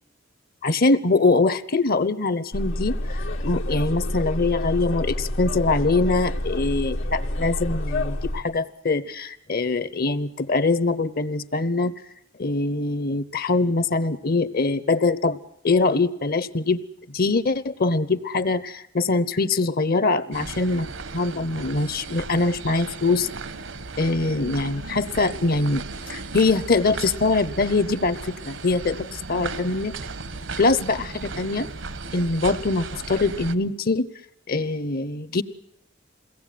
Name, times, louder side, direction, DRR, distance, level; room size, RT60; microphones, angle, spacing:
voice 1, 0.6-11.9 12.4-15.4 15.6-16.8 17.1-20.9 21.1-23.3 24.0-25.8 26.1-29.9 30.6-31.7 32.1-34.1 34.5-35.4, left 3 dB, 50° left, 16 dB, 1.0 m, -23 dB
sound 1, 2.5-8.4, left 1 dB, 85° left, 1.9 m, -28 dB
sound 2, 20.3-33.5, right 4 dB, 70° right, 1.1 m, -36 dB
22.5 x 17.5 x 9.3 m, 0.77 s
head